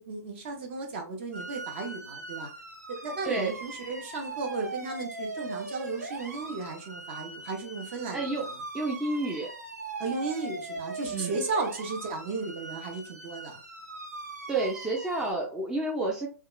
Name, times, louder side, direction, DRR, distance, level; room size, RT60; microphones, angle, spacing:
voice 1, 0.0-2.5 2.9-8.3 10.0-13.6, right 3 dB, 40° right, 3 dB, 0.7 m, -35 dB
sound 1, 1.3-15.3, right 3 dB, 75° right, 0.8 m, -40 dB
voice 2, 3.2-3.6 8.1-8.5 8.7-9.5 11.1-11.4 14.5-16.3, right 2 dB, 5° right, -1 dB, 0.4 m, -30 dB
2.7 x 2.3 x 2.3 m, 0.33 s
figure-of-eight pair, 120°, 9 cm